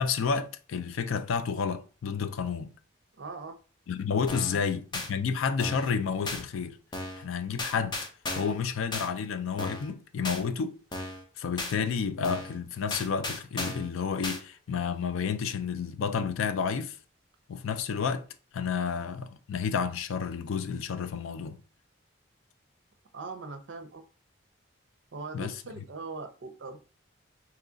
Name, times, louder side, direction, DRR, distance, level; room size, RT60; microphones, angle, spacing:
voice 1, 0.0-2.7 3.9-6.8 7.1-8.0 8.4-10.7 11.4-16.9 17.5-18.2 18.5-21.6 25.3-25.8, left 6 dB, 80° left, 0.4 m, -30 dB
voice 2, 3.2-3.6 4.5-4.6 23.1-24.0 25.1-26.8, right 3 dB, 60° right, 0.5 m, -40 dB
sound 1, 4.3-4.6 4.9-5.1 5.6-5.9 6.3-6.4 6.9-7.2 7.6-8.6 8.9-9.1 9.6-9.9 10.2-10.4 10.9-11.2 11.6-11.7 12.2-12.6 12.9-13.9 14.2-14.4, left 2 dB, 20° left, 0.5 m, -35 dB
2.9 x 2.3 x 3.8 m
head